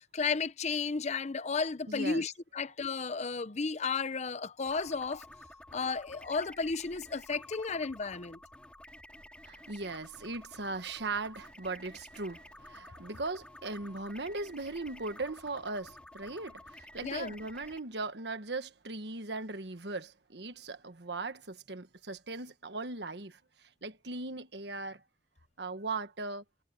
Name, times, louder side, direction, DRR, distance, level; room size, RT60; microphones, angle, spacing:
voice 1, 0.0-5.3 5.7-8.4 17.0-17.3, left 4 dB, 40° left, 0.7 m, -33 dB
voice 2, 1.9-2.2 9.4-25.0 25.6-26.4, right 3 dB, 70° right, 1.4 m, -39 dB
sound 1, 4.6-17.8, left 1 dB, 5° left, 2.7 m, -52 dB
head